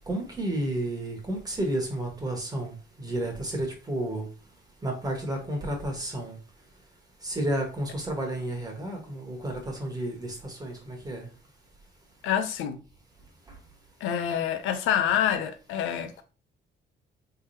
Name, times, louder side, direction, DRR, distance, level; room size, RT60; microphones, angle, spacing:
voice 1, 0.1-4.3 4.8-6.4 7.2-11.3, right 1 dB, 20° right, 1.4 m, -31 dB
voice 2, 12.2-12.8 14.0-16.2, left 9 dB, 90° left, 0.5 m, -27 dB
3.5 x 3.3 x 2.7 m
cardioid pair, 90°, 20 cm